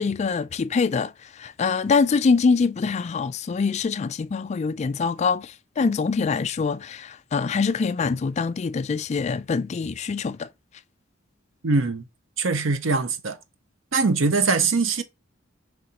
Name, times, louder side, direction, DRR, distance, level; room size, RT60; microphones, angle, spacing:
voice 1, 0.0-10.5, left 5 dB, 35° left, 0.3 m, -24 dB
voice 2, 11.6-12.1 12.4-13.4 13.9-15.0, right 4 dB, 65° right, 0.7 m, -22 dB
5.1 x 3.2 x 2.8 m
head